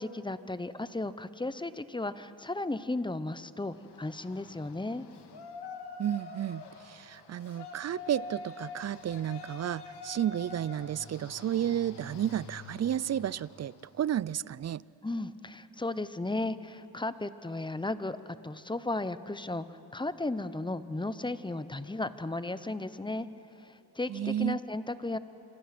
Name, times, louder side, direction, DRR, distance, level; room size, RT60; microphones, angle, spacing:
voice 1, 0.0-5.1 15.0-23.3 23.6-25.2, left 2 dB, 10° left, 13 dB, 0.9 m, -35 dB
Yell, 3.7-13.9, left 4 dB, 85° left, 2.0 m, -46 dB
voice 2, 6.0-14.8 24.1-24.6, right 10 dB, 45° right, 22 dB, 0.4 m, -32 dB
27.0 x 25.5 x 6.0 m, 2.9 s
cardioid pair, 75°, 39 cm